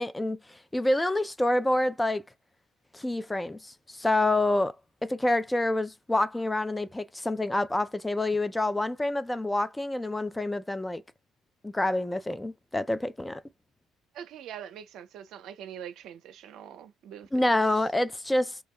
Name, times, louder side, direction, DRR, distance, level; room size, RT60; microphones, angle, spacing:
voice 1, 0.0-2.2 2.9-4.7 5.0-11.0 11.6-13.4 17.3-18.6, left 1 dB, 15° left, 0.3 m, -27 dB
voice 2, 14.1-17.6, right 9 dB, 65° right, 0.5 m, -43 dB
2.3 x 2.1 x 2.9 m
hypercardioid pair, 60°, 0 cm